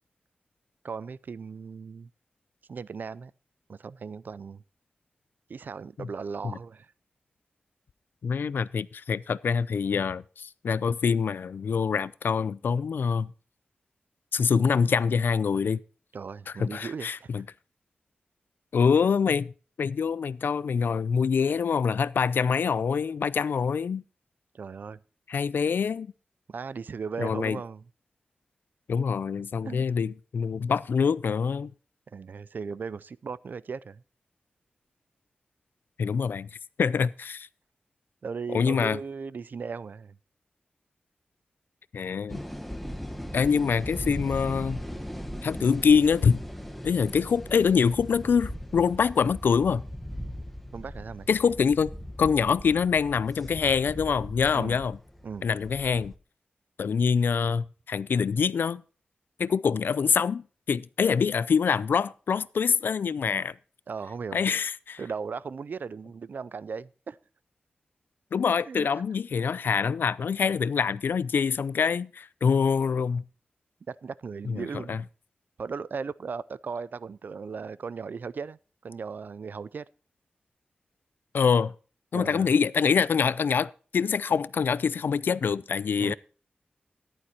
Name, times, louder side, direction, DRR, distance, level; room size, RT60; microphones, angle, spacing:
voice 1, 0.8-2.1 2.7-3.3 3.7-4.6 5.5-6.9 16.1-17.3 24.5-25.0 26.5-27.8 29.6-29.9 32.1-34.0 38.2-40.2 50.7-51.3 54.5-54.8 55.2-55.5 63.9-64.5 65.0-67.2 68.7-69.0 73.9-75.0 75.6-79.9 82.1-82.5 86.0-86.1, right 5 dB, 65° right, 0.4 m, -37 dB
voice 2, 8.2-13.3 14.3-15.8 16.6-17.4 18.7-19.5 19.8-24.0 25.3-26.1 27.2-27.6 28.9-31.7 36.0-36.5 36.8-37.5 38.5-39.0 41.9-42.4 43.3-44.8 45.4-46.4 46.8-49.8 51.3-51.9 52.2-55.0 55.4-56.1 56.8-58.8 59.4-63.5 64.3-65.0 68.3-73.2 74.5-75.0 81.3-81.7 82.1-86.1, left 6 dB, 80° left, 0.4 m, -25 dB
sound 1, 42.3-56.1, equal, 5° left, 1.2 m, -39 dB
14.0 x 11.0 x 2.9 m
wide cardioid pair, 95°, 3 cm